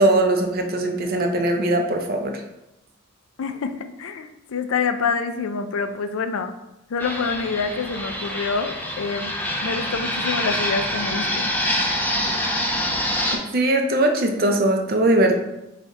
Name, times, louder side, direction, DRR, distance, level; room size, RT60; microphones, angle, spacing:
voice 1, 0.0-2.4 13.5-15.3, right 1 dB, 45° right, 4 dB, 0.5 m, -20 dB
voice 2, 3.4-6.5 6.9-9.3 9.6-11.5, left 5 dB, 75° left, 9 dB, 0.4 m, -26 dB
Fixed-wing aircraft airplane, 7.0-13.4, left 1 dB, 10° left, 0.3 m, -25 dB
3.6 x 3.4 x 4.0 m, 0.93 s
head